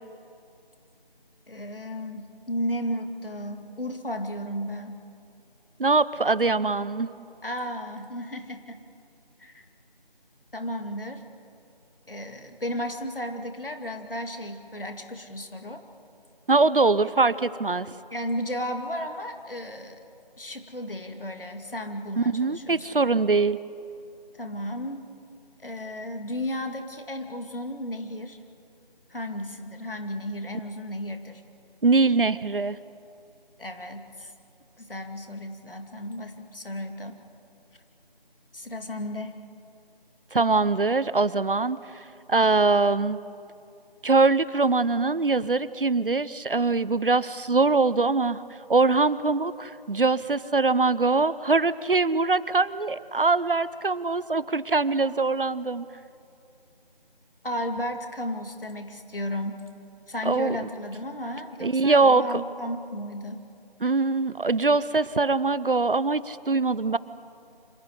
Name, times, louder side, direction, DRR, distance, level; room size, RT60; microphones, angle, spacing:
voice 1, 1.5-5.0 7.4-8.8 9.4-9.6 10.5-11.2 12.1-15.8 18.1-20.0 20.4-22.9 24.4-25.1 25.6-28.4 29.1-31.4 33.6-34.3 34.8-37.2 38.5-39.4 57.4-59.7 60.1-63.4, equal, 65° left, 5 dB, 2.5 m, -34 dB
voice 2, 5.8-7.1 16.5-17.9 22.2-23.6 31.8-32.8 40.3-42.0 42.3-43.2 44.0-48.4 48.7-55.9 60.2-60.7 61.6-62.4 63.8-67.0, right 3 dB, 65° right, 17 dB, 0.8 m, -23 dB
26.5 x 14.5 x 9.8 m, 2.5 s
figure-of-eight pair, 170°, 29 cm